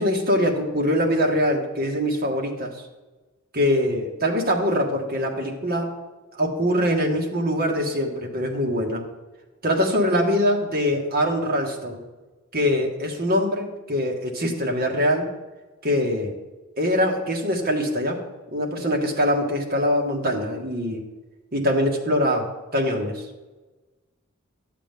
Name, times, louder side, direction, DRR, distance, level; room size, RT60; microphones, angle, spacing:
voice 1, 0.0-2.7 3.5-5.9 6.4-9.0 9.6-12.0 12.5-15.3 15.8-16.3 16.8-18.2 18.5-21.0 21.5-23.2, equal, 50° right, 0 dB, 1.6 m, -23 dB
12.0 x 7.5 x 3.5 m, 1.2 s
head